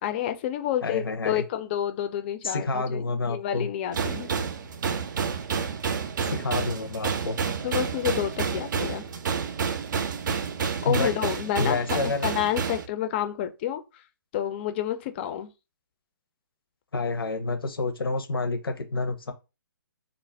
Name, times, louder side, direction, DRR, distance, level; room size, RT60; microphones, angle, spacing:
voice 1, 0.0-4.3 7.5-9.0 10.8-14.0 14.3-15.5, left 11 dB, 30° left, 0.4 m, -29 dB
voice 2, 0.8-1.4 2.4-3.7 6.2-7.4 10.8-11.1 11.6-12.3 16.9-19.3, left 3 dB, 85° left, 0.7 m, -28 dB
sound 1, 3.9-12.9, right 6 dB, 60° right, 0.5 m, -29 dB
2.4 x 2.0 x 3.3 m
hypercardioid pair, 140°, 12 cm